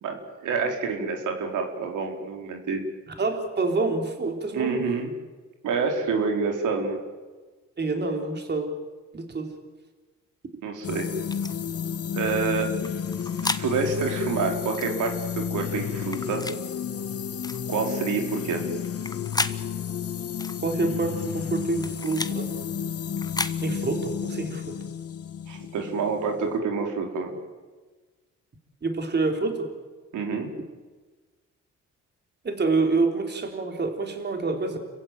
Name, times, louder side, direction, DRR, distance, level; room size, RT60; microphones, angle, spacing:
voice 1, 0.0-2.8 4.5-5.1 5.6-7.0 10.6-11.1 12.1-12.7 13.4-16.4 17.7-18.6 25.5-27.3 30.1-30.5, right 5 dB, 80° right, 2 dB, 4.4 m, -27 dB
voice 2, 3.2-4.9 7.8-8.7 9.1-9.5 20.6-22.5 23.6-24.7 28.8-29.7 32.4-34.8, right 3 dB, 35° right, 4 dB, 4.0 m, -27 dB
sound 1, 10.8-26.6, left 8 dB, 50° left, 1.8 m, -32 dB
sound 2, 11.3-11.5 12.8-13.7 14.7-14.9 16.0-16.6 17.4-17.6 18.8-19.6 20.4-20.6 21.6-22.4 23.2-23.6, left 2 dB, 15° left, 1.3 m, -32 dB
30.0 x 15.5 x 9.3 m, 1.3 s
cardioid pair, 90°, 30 cm